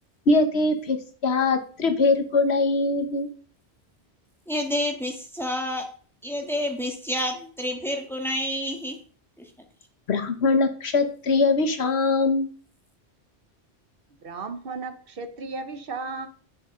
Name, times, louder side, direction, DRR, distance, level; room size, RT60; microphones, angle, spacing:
voice 1, 0.3-1.0 1.2-3.3 10.1-12.5, left 3 dB, 75° left, 1.4 m, -22 dB
voice 2, 4.5-5.8 6.2-9.0 9.4-9.5, left 1 dB, ahead, 1.6 m, -29 dB
voice 3, 14.2-16.3, right 4 dB, 60° right, 1.1 m, -34 dB
9.9 x 6.2 x 3.8 m
omnidirectional pair, 1.1 m